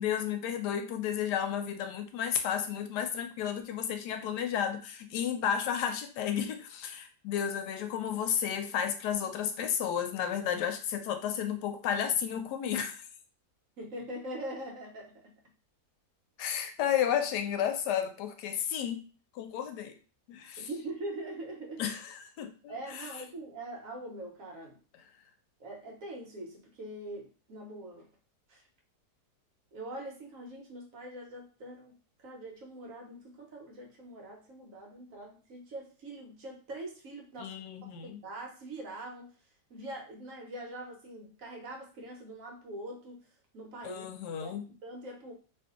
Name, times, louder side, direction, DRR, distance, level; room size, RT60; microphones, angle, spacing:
voice 1, 0.0-13.0 16.4-19.0 19.3-19.9 20.3-20.7 21.8-23.0 37.4-38.2 43.8-44.7, left 9 dB, 85° left, 7 dB, 1.2 m, -32 dB
voice 2, 13.8-15.3 20.6-21.8 22.7-24.8 25.6-28.1 28.5-28.7 29.7-37.5 38.0-39.3 39.7-43.2 43.5-44.1 44.4-45.3, right 1 dB, 60° right, 0 dB, 1.1 m, -43 dB
2.8 x 2.6 x 3.6 m, 0.38 s
omnidirectional pair, 1.7 m